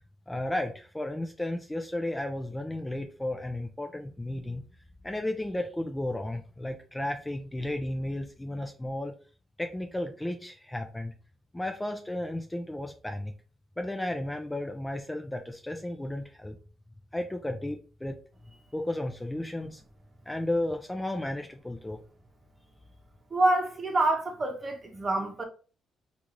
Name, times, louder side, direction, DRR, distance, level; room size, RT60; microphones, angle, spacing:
voice 1, 0.3-4.6 5.0-9.2 9.6-11.1 11.5-13.3 13.8-16.6 17.1-18.2 18.7-19.8 20.3-22.0, left 1 dB, 10° left, 0.6 m, -33 dB
voice 2, 23.3-25.4, right 2 dB, 35° right, 1.0 m, -26 dB
3.5 x 2.5 x 3.0 m
supercardioid pair, 60°, 0 cm